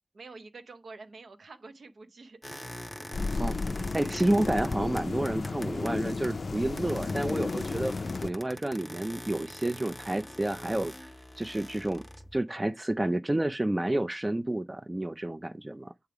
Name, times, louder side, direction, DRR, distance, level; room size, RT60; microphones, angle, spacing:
voice 1, 0.1-2.4, right 3 dB, 90° right, 0.7 m, -47 dB
sound 1, 2.4-6.5 6.8-12.4, left 1 dB, 5° left, 0.7 m, -44 dB
sound 2, 3.1-8.3, left 3 dB, 65° left, 0.3 m, -33 dB
voice 2, 3.4-7.9 8.2-11.1 11.4-12.0 12.3-15.9, right 1 dB, 20° right, 0.3 m, -30 dB
8.0 x 3.4 x 4.7 m
wide cardioid pair, 90°, 0 cm